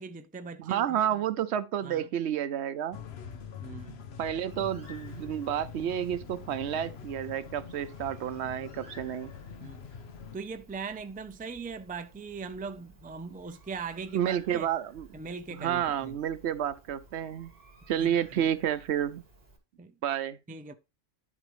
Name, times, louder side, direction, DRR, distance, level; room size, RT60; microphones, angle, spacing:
voice 1, 0.0-1.1 1.8-2.1 3.6-4.0 9.6-9.9 10.3-14.7 15.1-16.2 18.0-18.4 19.8-19.9 20.5-20.7, right 5 dB, 15° right, 0.3 m, -40 dB
voice 2, 0.6-3.0 4.2-9.3 14.1-15.1 15.5-17.5 17.9-19.2 20.0-20.4, right 10 dB, 85° right, 0.9 m, -30 dB
sound 1, 2.9-10.4, left 7 dB, 75° left, 1.1 m, -44 dB
Bird, 4.5-19.6, right 1 dB, 65° right, 2.6 m, -56 dB
11.0 x 5.0 x 3.1 m
omnidirectional pair, 1.1 m